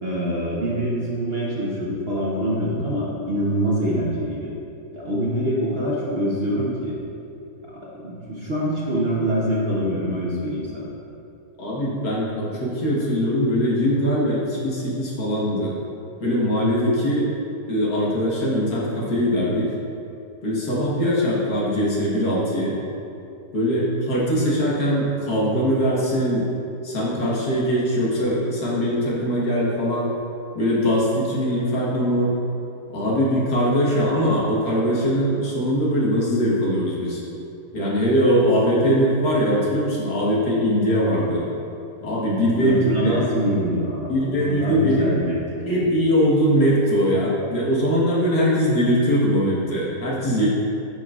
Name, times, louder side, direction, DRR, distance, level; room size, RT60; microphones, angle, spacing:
voice 1, 0.0-4.5 4.9-7.0 7.7-10.9 42.5-45.4 45.6-45.8, equal, 40° right, -6 dB, 1.1 m, -25 dB
voice 2, 11.6-15.7 16.2-17.3 17.7-19.7 20.4-22.8 23.5-26.5 26.8-30.1 30.5-32.3 32.9-37.2 37.7-41.4 42.0-43.1 44.1-45.1 45.7-50.5, equal, 65° left, -6 dB, 2.0 m, -21 dB
10.5 x 6.9 x 2.5 m, 2.8 s
omnidirectional pair, 1.9 m